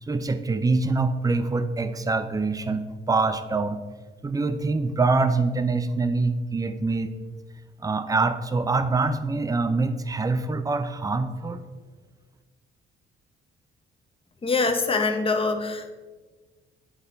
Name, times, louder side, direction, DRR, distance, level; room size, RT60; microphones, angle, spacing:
voice 1, 0.0-3.8 4.2-7.1 7.8-11.7, right 3 dB, 20° right, 10 dB, 0.6 m, -25 dB
voice 2, 14.4-15.9, left 3 dB, 30° left, 6 dB, 0.9 m, -24 dB
10.0 x 4.1 x 4.0 m, 1.3 s
cardioid pair, 90°, 20 cm